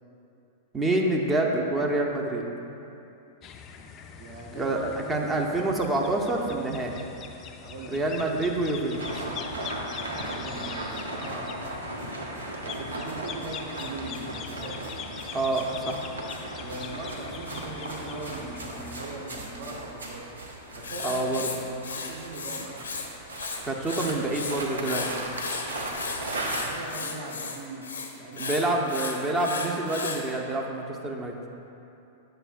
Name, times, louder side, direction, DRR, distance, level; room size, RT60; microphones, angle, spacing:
voice 1, 0.7-2.4 4.5-7.0 7.9-9.3 15.3-16.1 21.0-21.5 23.6-25.2 28.4-31.3, right 2 dB, 15° right, 0 dB, 0.7 m, -27 dB
sound 1, 3.4-19.0, left 7 dB, 30° left, 0.4 m, -42 dB
voice 2, 4.1-4.8 7.6-8.3 9.9-11.8 12.6-15.1 16.6-20.4 20.7-21.3 21.7-22.9 26.3-27.9 28.2-28.6, right 2 dB, 50° right, -1 dB, 0.9 m, -40 dB
sound 2, 8.9-26.8, right 1 dB, 75° right, 0.8 m, -37 dB
Writing, 20.8-23.1 23.3-24.5 24.8-30.2, left 4 dB, 70° left, 0.6 m, -34 dB
8.9 x 6.7 x 2.4 m, 2.8 s
figure-of-eight pair, 95°, 0 cm